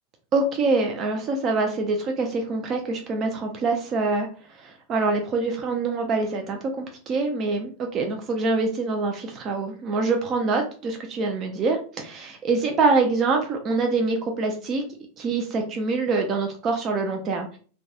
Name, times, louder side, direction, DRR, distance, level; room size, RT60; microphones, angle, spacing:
voice 1, 0.3-4.3 4.6-14.8 15.2-17.6, right 3 dB, 30° right, 3 dB, 0.4 m, -25 dB
2.2 x 2.2 x 2.7 m, 0.41 s
figure-of-eight pair, 90°, 0 cm